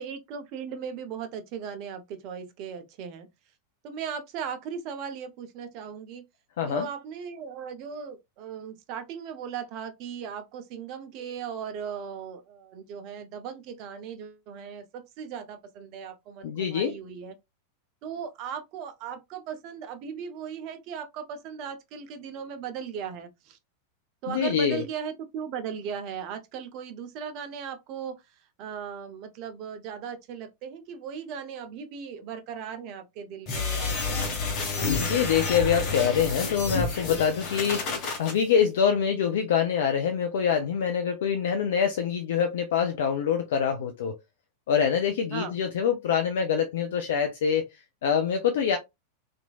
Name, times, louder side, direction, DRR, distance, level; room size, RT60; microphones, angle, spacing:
voice 1, 0.0-3.3 3.8-6.2 6.6-17.3 18.0-23.6 24.2-28.2 28.6-34.5 45.3-45.5, right 7 dB, 40° right, 0.6 m, -37 dB
voice 2, 16.4-17.0 24.3-24.8 35.0-44.2 44.7-48.8, left 7 dB, 55° left, 0.4 m, -25 dB
sound 1, 33.5-38.3, left 4 dB, 40° left, 1.0 m, -29 dB
3.0 x 2.5 x 2.3 m
figure-of-eight pair, 90°, 0 cm